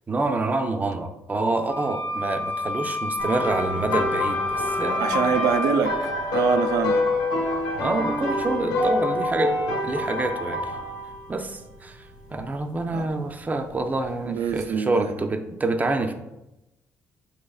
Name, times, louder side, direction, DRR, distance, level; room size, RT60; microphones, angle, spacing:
voice 1, 0.1-5.4 7.8-9.5 9.8-10.7 11.3-16.1, right 2 dB, 25° right, 0.5 m, -27 dB
sound 1, 1.7-5.8, left 2 dB, 30° left, 0.8 m, -29 dB
sound 2, 3.2-11.4 12.3-12.5 14.4-14.5, left 2 dB, 80° left, 1.0 m, -26 dB
voice 2, 5.0-7.0 12.9-13.1 14.3-15.1, right 6 dB, 85° right, 0.4 m, -25 dB
6.6 x 2.9 x 2.3 m
supercardioid pair, 70°, 6 cm